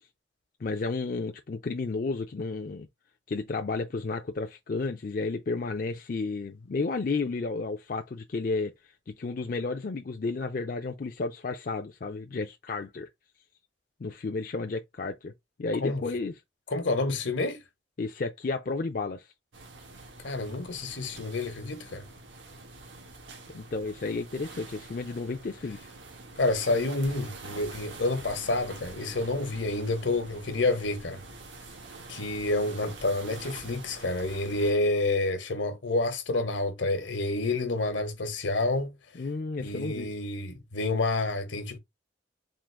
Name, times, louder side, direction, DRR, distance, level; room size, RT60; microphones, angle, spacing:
voice 1, 0.6-2.9 3.3-8.7 9.1-13.1 14.0-15.3 15.6-16.3 18.0-19.3 23.5-25.8 39.2-40.1, left 3 dB, 45° left, 0.4 m, -32 dB
voice 2, 16.7-17.6 20.2-22.1 26.4-31.2 32.1-38.9 39.6-41.8, left 2 dB, 80° left, 1.1 m, -29 dB
sound 1, 19.5-34.7, right 3 dB, 90° right, 1.2 m, -46 dB
3.8 x 2.4 x 4.6 m
head